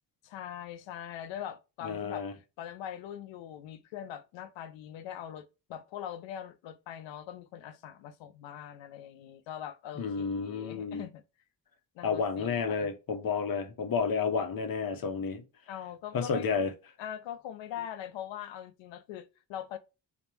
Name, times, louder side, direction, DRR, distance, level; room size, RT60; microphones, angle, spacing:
voice 1, 0.2-2.2 2.6-11.2 11.9-12.9 15.7-16.5 17.0-19.8, left 10 dB, 85° left, 0.7 m, -42 dB
voice 2, 1.8-2.3 10.0-11.0 12.0-15.4 16.1-16.7, left 5 dB, 50° left, 1.0 m, -31 dB
3.4 x 2.5 x 4.4 m
supercardioid pair, 50°, 44 cm